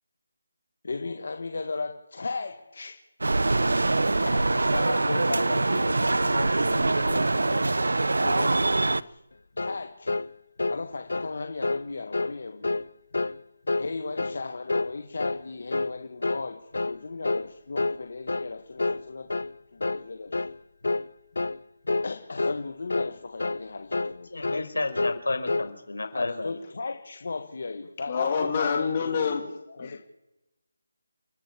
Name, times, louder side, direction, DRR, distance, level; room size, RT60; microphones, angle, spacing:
voice 1, 0.8-3.1 4.2-7.7 8.2-9.2 9.6-10.2 10.7-12.7 13.8-20.5 22.0-24.5 26.1-30.0, left 3 dB, 50° left, 7 dB, 1.5 m, -36 dB
sound 1, 3.2-9.0, right 2 dB, 85° right, 0.8 m, -24 dB
sound 2, 9.6-9.8 10.1-10.3 10.6-10.8 11.1-11.3 11.6-11.8 12.1-12.3 12.6-12.9 13.1-13.4 13.7-13.9 14.2-14.4 14.7-14.9 15.2-15.4 15.7-15.9 16.2-16.5 16.7-17.0 17.2-17.5 17.8-18.0 18.3-18.5 18.8-19.0 19.3-19.5 19.8-20.0 20.3-20.6 20.8-21.1 21.4-21.6 21.9-22.1 22.4-22.6 22.9-23.1 23.4-23.6 23.9-24.2 24.4-24.7 25.0-25.2 25.5-25.7, left 3 dB, 70° left, 0.9 m, -28 dB
voice 2, 24.3-26.5, left 2 dB, 85° left, 6 dB, 5.1 m, -31 dB
voice 3, 28.1-29.4 29.8-30.0, left 6 dB, 25° left, 2 dB, 2.6 m, -26 dB
29.0 x 11.5 x 8.4 m, 1.0 s
figure-of-eight pair, 175°, 0 cm